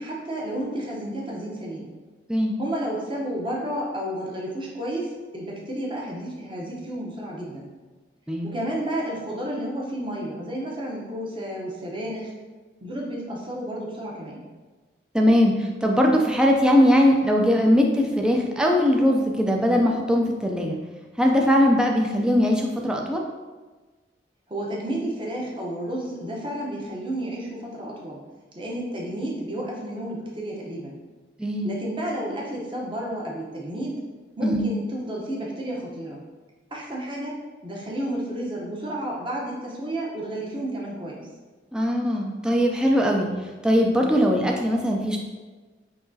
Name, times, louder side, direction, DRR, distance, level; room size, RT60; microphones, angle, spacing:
voice 1, 0.0-1.9 2.6-7.7 8.4-12.3 12.8-14.4 24.5-28.2 28.5-31.0 31.6-34.0 34.4-36.2 36.7-37.3 37.6-41.3, right 1 dB, 25° right, -3 dB, 0.8 m, -31 dB
voice 2, 15.1-20.8 21.2-23.3 31.4-31.7 34.4-34.7 41.7-43.3 43.6-45.2, equal, 5° right, 0 dB, 0.4 m, -20 dB
5.8 x 2.9 x 2.7 m, 1.3 s
head